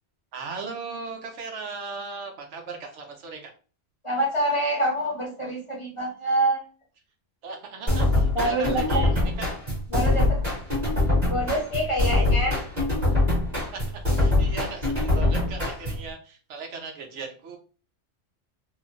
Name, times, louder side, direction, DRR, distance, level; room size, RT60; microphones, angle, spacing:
voice 1, 0.3-3.5 7.4-9.5 13.7-13.8 14.2-17.6, right 4 dB, 70° right, 3 dB, 1.0 m, -37 dB
voice 2, 4.0-6.6 8.3-9.1 9.9-10.4 11.3-12.6, right 1 dB, 30° left, -3 dB, 0.8 m, -26 dB
sound 1, 7.9-16.1, left 2 dB, 35° right, 1.6 m, -24 dB
3.0 x 2.2 x 2.5 m, 0.37 s
omnidirectional pair, 1.3 m